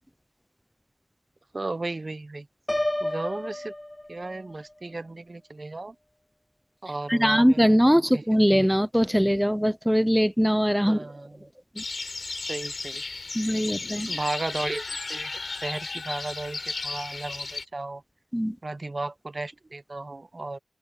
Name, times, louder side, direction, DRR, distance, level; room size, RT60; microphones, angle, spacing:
voice 1, 1.5-2.5 3.0-3.7 4.1-5.9 6.8-7.7 8.1-8.2 10.9-11.3 12.5-13.0 14.1-18.0 18.6-20.6, right 2 dB, 50° right, 0.9 m, -34 dB
Piano, 2.7-4.6, left 1 dB, 25° left, 0.4 m, -30 dB
voice 2, 7.1-11.1 11.8-11.9 13.3-14.1 18.3-18.6, equal, ahead, 0.8 m, -21 dB
sound 1, 11.8-17.6, left 3 dB, 70° left, 5.2 m, -34 dB
open air
cardioid pair, 40°, 0 cm